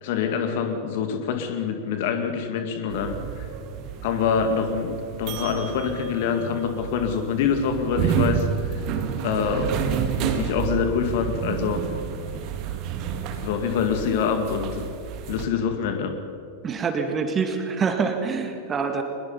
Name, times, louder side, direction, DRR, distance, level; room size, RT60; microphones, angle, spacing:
voice 1, 0.0-3.5 4.0-8.7 9.2-9.9 10.2-11.8 13.4-14.9 15.3-16.2, left 6 dB, 50° left, 7 dB, 2.2 m, -25 dB
sound 1, 2.9-15.5, right 8 dB, 40° right, 1.9 m, -30 dB
voice 2, 16.6-19.0, right 5 dB, 20° right, 6 dB, 2.2 m, -25 dB
22.5 x 21.0 x 5.6 m, 2.7 s
figure-of-eight pair, 90°, 0 cm